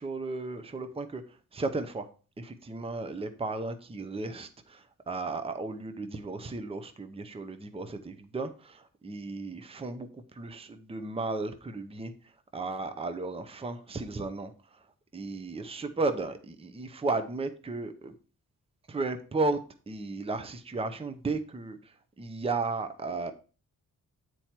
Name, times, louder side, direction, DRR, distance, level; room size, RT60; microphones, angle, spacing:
voice 1, 0.0-2.1 2.4-18.1 18.9-19.6 19.9-23.3, right 3 dB, 15° right, 9 dB, 0.7 m, -34 dB
8.8 x 4.6 x 4.4 m, 0.36 s
wide cardioid pair, 135°, 33 cm